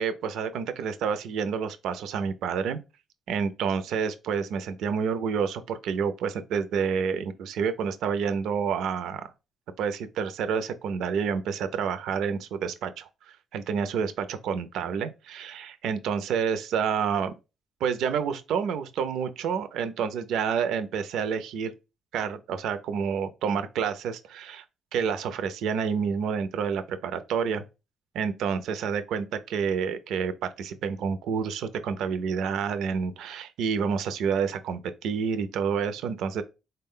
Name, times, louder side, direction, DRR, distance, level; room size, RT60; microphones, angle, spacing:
voice 1, 0.0-2.8 3.3-9.3 9.8-17.3 17.8-21.7 22.1-24.6 24.9-27.6 28.1-36.4, right 6 dB, 80° right, 0.4 m, -29 dB
3.9 x 2.2 x 3.6 m
cardioid pair, 90°, 0 cm